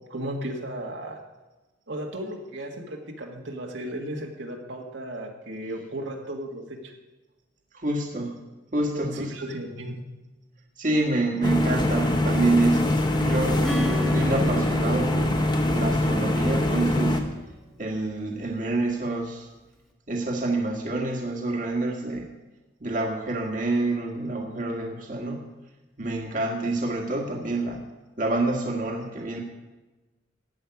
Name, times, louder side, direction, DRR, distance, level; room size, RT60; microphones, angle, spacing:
voice 1, 0.1-1.2 1.9-6.9 8.8-10.0, right 1 dB, 70° right, 1 dB, 2.0 m, -35 dB
voice 2, 7.7-8.4 8.7-9.3 10.8-13.7 14.1-15.3 15.7-17.2 17.8-19.5 20.1-22.2 22.8-25.4 26.0-27.8 28.2-29.4, right 2 dB, 45° right, 0 dB, 1.8 m, -27 dB
sound 1, 11.4-17.2, left 1 dB, 25° left, 1.2 m, -23 dB
Acoustic guitar / Strum, 13.6-17.9, equal, ahead, 1.5 m, -35 dB
15.0 x 5.6 x 9.5 m, 1.1 s
head